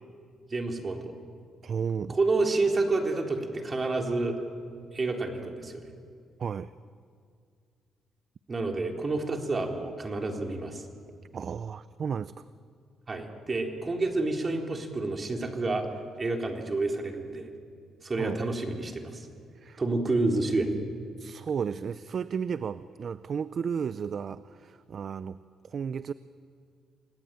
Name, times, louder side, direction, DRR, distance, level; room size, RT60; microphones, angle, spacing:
voice 1, 0.5-1.0 2.1-4.4 4.9-5.9 8.5-10.9 13.1-15.9 16.2-17.5 18.0-19.3 19.8-20.7, right 3 dB, 30° right, 2 dB, 3.8 m, -29 dB
voice 2, 1.6-2.2 6.4-6.7 11.3-12.3 18.2-18.4 19.5-19.8 21.2-25.4 25.6-26.1, right 6 dB, 50° right, 14 dB, 0.6 m, -33 dB
28.5 x 19.0 x 9.1 m, 2.2 s
cardioid pair, 90°, 0 cm